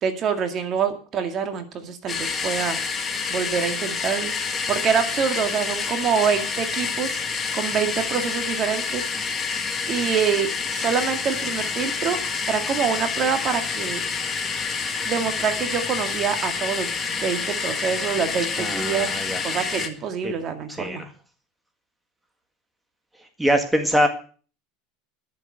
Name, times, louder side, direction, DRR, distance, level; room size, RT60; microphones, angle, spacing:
voice 1, 0.0-2.8 3.3-7.2 7.5-9.0 9.9-12.2 12.5-14.0 15.1-19.1 19.4-21.0, right 7 dB, 40° right, 7 dB, 2.1 m, -26 dB
sound 1, 2.1-19.9, left 5 dB, 20° left, 1.6 m, -28 dB
voice 2, 18.6-19.4 20.2-20.3 20.7-21.1 23.4-24.1, equal, 5° right, 5 dB, 1.7 m, -23 dB
11.5 x 7.5 x 7.6 m, 0.40 s
supercardioid pair, 125°, 0 cm